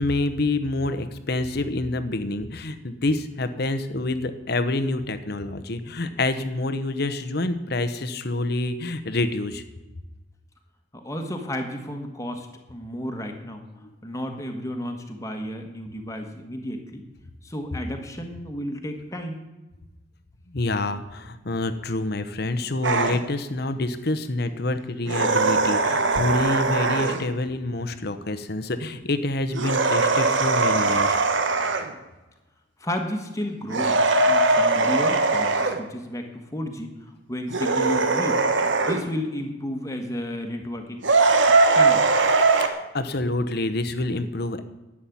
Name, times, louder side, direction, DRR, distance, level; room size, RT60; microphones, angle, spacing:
voice 1, 0.0-9.6 20.5-31.2 42.6-44.6, left 2 dB, 55° left, 9 dB, 0.9 m, -27 dB
voice 2, 10.9-13.6 14.0-17.0 17.4-19.4 32.8-38.4 38.8-41.0 41.6-42.0, equal, 15° left, 3 dB, 1.4 m, -32 dB
sound 1, 22.8-23.2 25.1-27.3 29.5-31.9 33.7-35.8 37.5-39.0 41.0-42.7, right 3 dB, 70° right, 1.3 m, -20 dB
11.5 x 7.6 x 8.6 m, 1.1 s
head